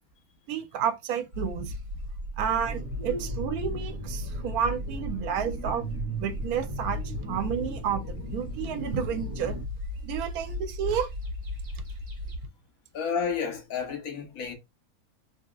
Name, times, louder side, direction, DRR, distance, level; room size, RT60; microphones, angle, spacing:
voice 1, 0.5-1.7 2.4-5.8 6.2-8.0 8.3-9.6 10.0-11.1, right 8 dB, 85° right, 1.1 m, -30 dB
sound 1, 1.3-12.5, left 1 dB, 55° right, 1.3 m, -36 dB
sound 2, 2.6-9.7, right 1 dB, 45° left, 1.7 m, -39 dB
voice 2, 12.9-14.5, left 6 dB, 70° left, 1.3 m, -31 dB
3.4 x 2.9 x 2.3 m
omnidirectional pair, 1.5 m